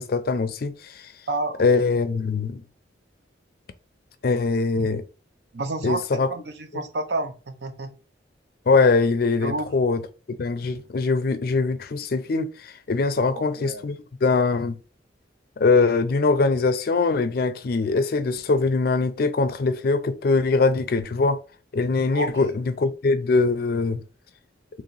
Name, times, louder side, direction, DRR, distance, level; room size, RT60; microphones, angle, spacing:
voice 1, 0.0-1.1 1.6-2.6 4.2-5.0 5.8-6.3 6.7-6.8 8.7-10.0 10.4-14.8 15.6-21.4 21.7-24.0, left 4 dB, 55° left, 0.4 m, -22 dB
voice 2, 1.3-1.7 5.5-7.9 9.4-9.7 13.2-13.8 22.1-22.6, right 2 dB, 65° right, 0.6 m, -30 dB
3.1 x 2.8 x 3.9 m
head